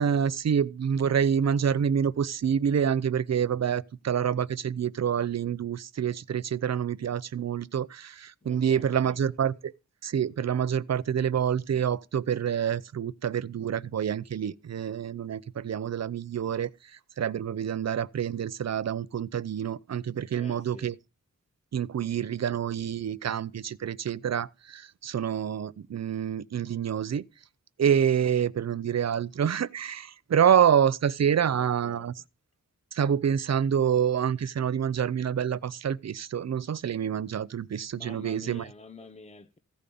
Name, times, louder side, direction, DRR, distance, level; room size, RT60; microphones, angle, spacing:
voice 1, 0.0-9.7 10.0-16.7 17.2-20.9 21.7-27.2 27.8-32.1 32.9-38.7, right 8 dB, 55° right, 0.6 m, -27 dB
voice 2, 8.4-9.2 20.3-20.9 31.4-32.1 37.9-39.6, left 3 dB, 20° left, 0.7 m, -48 dB
15.5 x 5.2 x 6.9 m
wide cardioid pair, 95°, 32 cm